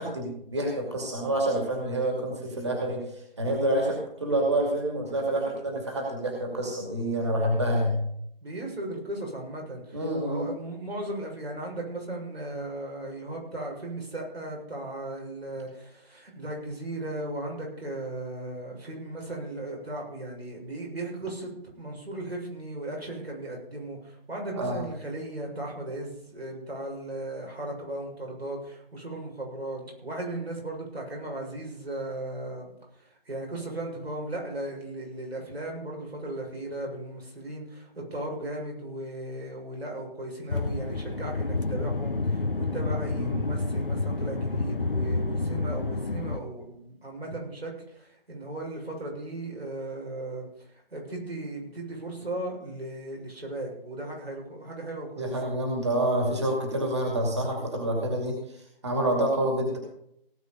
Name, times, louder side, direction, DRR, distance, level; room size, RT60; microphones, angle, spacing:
voice 1, 0.0-7.9 9.9-10.5 24.5-24.8 43.2-43.4 55.2-58.4 58.8-59.8, right 1 dB, 30° right, 0 dB, 2.6 m, -27 dB
voice 2, 8.4-55.4, right 1 dB, 90° right, -1 dB, 6.9 m, -36 dB
sound 1, 40.5-46.4, left 3 dB, 65° left, 1.6 m, -29 dB
18.0 x 8.3 x 5.3 m, 0.71 s
figure-of-eight pair, 180°, 30 cm